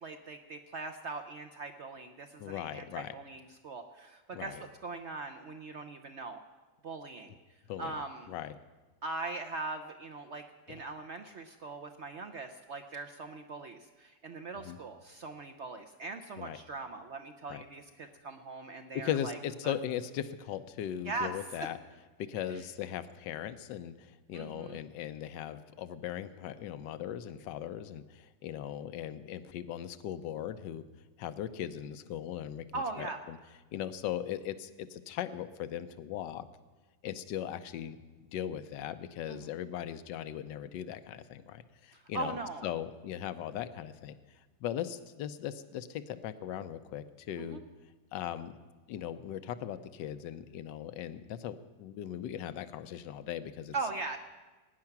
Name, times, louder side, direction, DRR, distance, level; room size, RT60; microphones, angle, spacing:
voice 1, 0.0-6.4 6.8-7.3 7.8-8.3 9.0-19.4 19.6-19.7 21.1-21.3 21.6-21.7 22.5-22.6 24.3-24.8 32.7-33.2 39.3-39.5 41.9-42.7 47.4-47.6 53.7-54.2, right 3 dB, 60° right, 6 dB, 0.7 m, -40 dB
voice 2, 2.4-3.1 4.3-4.6 7.7-8.0 8.3-8.5 10.7-10.8 14.6-14.8 16.4-16.6 17.5-17.6 18.9-21.8 22.2-30.8 31.2-33.4 33.7-36.5 37.0-38.0 38.3-42.3 42.6-44.1 44.6-47.6 48.1-48.6 48.9-53.7, left 10 dB, 80° left, 12 dB, 1.3 m, -38 dB
17.5 x 9.7 x 5.9 m, 1.3 s
omnidirectional pair, 1.9 m